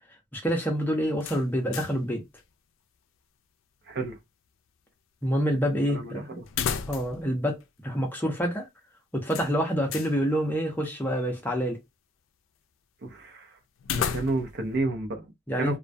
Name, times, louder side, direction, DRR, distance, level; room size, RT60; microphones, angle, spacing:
voice 1, 0.3-2.2 5.2-6.3 6.9-7.6 7.8-8.7 9.1-11.8 15.5-15.8, equal, 10° left, 0.6 m, -27 dB
sound 1, 1.2-2.1 2.4-2.5 6.5-7.3 7.6-7.7 9.3-10.1 13.8-14.6, left 7 dB, 85° left, 0.4 m, -33 dB
voice 2, 3.9-4.2 5.8-6.5 13.0-13.5 13.9-15.3 15.6-15.8, right 2 dB, 55° right, 0.6 m, -31 dB
2.2 x 2.2 x 2.5 m
head